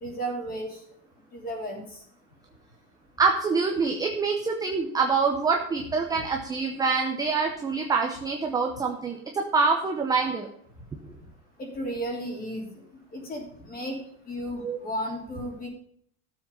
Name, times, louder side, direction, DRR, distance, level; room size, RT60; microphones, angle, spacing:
voice 1, 0.0-0.8 1.3-1.8 11.6-12.8 13.1-13.9 14.3-15.7, equal, 20° left, 1 dB, 3.2 m, -33 dB
voice 2, 3.2-10.5 14.6-14.8, right 4 dB, 10° right, 2 dB, 0.7 m, -25 dB
13.5 x 7.5 x 5.4 m, 0.67 s
supercardioid pair, 170°, 44 cm